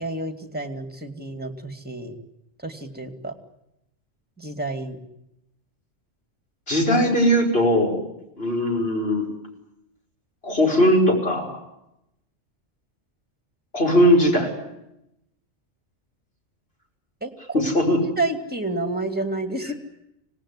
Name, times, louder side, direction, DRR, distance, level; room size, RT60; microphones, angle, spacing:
voice 1, 0.0-2.2 2.6-3.3 4.4-5.0 17.2-17.6 18.2-19.7, right 2 dB, 5° right, 7 dB, 2.6 m, -29 dB
voice 2, 6.7-8.0 8.4-9.3 10.4-11.5 13.7-14.5 17.5-18.0, equal, 50° left, 0 dB, 5.9 m, -19 dB
26.0 x 19.0 x 9.8 m, 0.84 s
omnidirectional pair, 1.3 m